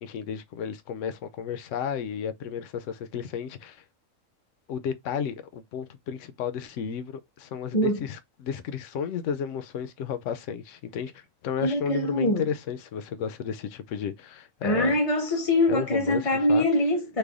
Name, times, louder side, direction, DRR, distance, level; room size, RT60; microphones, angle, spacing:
voice 1, 0.0-3.8 4.7-14.9 15.7-16.7, left 7 dB, 75° left, 0.9 m, -33 dB
voice 2, 11.6-12.4 14.6-17.2, left 1 dB, 35° left, 0.7 m, -23 dB
3.3 x 2.2 x 3.5 m
omnidirectional pair, 1.3 m